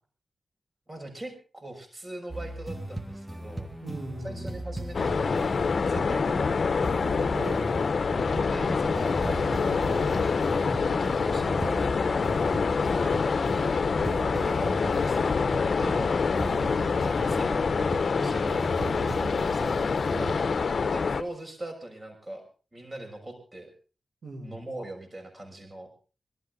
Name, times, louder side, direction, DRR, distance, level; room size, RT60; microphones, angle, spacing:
voice 1, 0.9-3.7 4.2-5.5 5.8-6.9 8.4-10.2 10.8-12.3 12.9-13.6 14.4-16.2 17.0-17.7 18.1-19.8 20.9-22.4 22.7-23.7 24.4-25.9, right 1 dB, 35° right, 4 dB, 6.2 m, -41 dB
sound 1, 2.3-20.4, right 1 dB, 15° right, 2.2 m, -38 dB
voice 2, 3.8-4.5 7.3-7.7 14.1-14.4 20.1-20.5 24.2-24.6, right 2 dB, 80° right, 1 dB, 6.3 m, -39 dB
sound 2, 4.9-21.2, left 5 dB, 65° left, 0.9 m, -26 dB
24.5 x 13.0 x 3.9 m, 0.35 s
cardioid pair, 55°, 0 cm